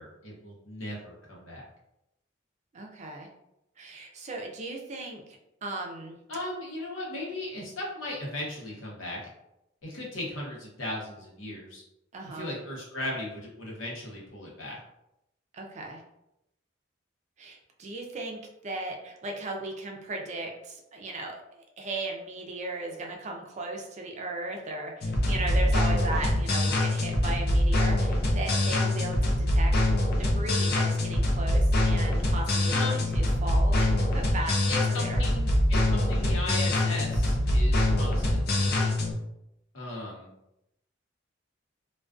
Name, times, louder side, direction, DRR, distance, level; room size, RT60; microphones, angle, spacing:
voice 1, 0.0-1.6 6.3-9.2 9.8-11.8 12.3-14.8 32.7-33.1 34.7-38.9 39.7-40.3, left 2 dB, 90° left, -3 dB, 0.8 m, -37 dB
voice 2, 2.7-3.3 3.8-6.2 12.1-12.5 15.5-16.0 17.4-29.7 30.2-35.2, right 2 dB, 35° right, 2 dB, 0.4 m, -37 dB
sound 1, 25.0-39.1, left 1 dB, 55° left, 0.5 m, -24 dB
2.3 x 2.2 x 2.4 m, 0.85 s
head